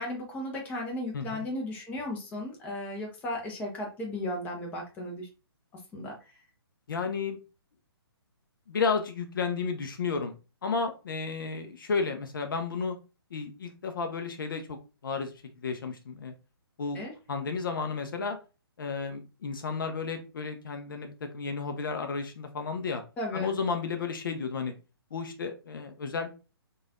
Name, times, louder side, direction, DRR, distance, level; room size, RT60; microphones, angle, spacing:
voice 1, 0.0-5.3 5.9-6.2 16.9-17.1 23.2-23.5, left 1 dB, 10° left, 0 dB, 0.6 m, -35 dB
voice 2, 1.1-1.4 6.9-7.4 8.7-10.3 10.6-13.0 13.3-14.8 15.0-15.3 15.6-16.3 16.8-17.0 17.3-18.4 18.8-23.0 23.3-24.7 25.1-26.3, left 5 dB, 55° left, 6 dB, 0.4 m, -32 dB
3.2 x 2.3 x 2.3 m, 0.31 s
figure-of-eight pair, 135°, 13 cm